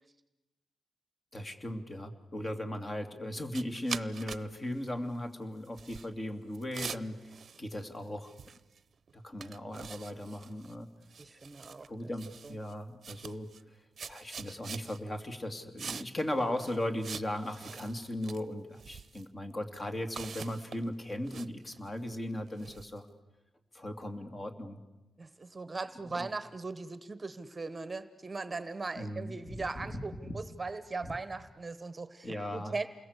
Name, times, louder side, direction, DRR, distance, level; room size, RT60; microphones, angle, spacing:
voice 1, 1.3-7.3 7.6-8.3 9.1-10.9 11.9-13.5 14.1-23.1 23.7-24.8 26.2-26.3 28.9-30.4 31.0-31.1 32.2-32.8, left 1 dB, 30° left, 7 dB, 2.7 m, -37 dB
sound 1, 3.5-4.5 4.7-4.9 5.6-6.1 6.5-8.0 8.2-8.8 9.1-9.2 9.4-10.7 11.0-11.9 12.2-12.7 13.0-13.6 14.0-15.0 15.8-16.3 16.6-18.4 18.8-19.2 20.1-23.0, right 6 dB, 55° right, 0.8 m, -44 dB
voice 2, 11.2-11.9 12.4-12.5 25.2-32.9, right 3 dB, 25° right, 13 dB, 1.1 m, -39 dB
28.5 x 21.5 x 8.3 m, 1.1 s
cardioid pair, 110°, 0 cm